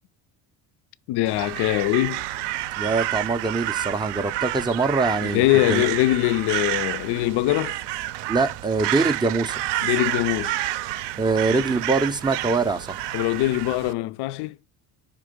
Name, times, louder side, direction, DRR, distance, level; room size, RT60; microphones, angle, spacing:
voice 1, 1.1-2.2 5.2-7.8 9.8-10.6 13.1-14.6, left 17 dB, 65° left, 0.5 m, -22 dB
Crow, 1.3-13.9, right 15 dB, 70° right, 0.5 m, -29 dB
voice 2, 2.8-5.8 8.3-9.6 11.2-13.0, right 3 dB, 10° right, 0.3 m, -23 dB
5.0 x 3.7 x 5.0 m
cardioid pair, 120°, 43 cm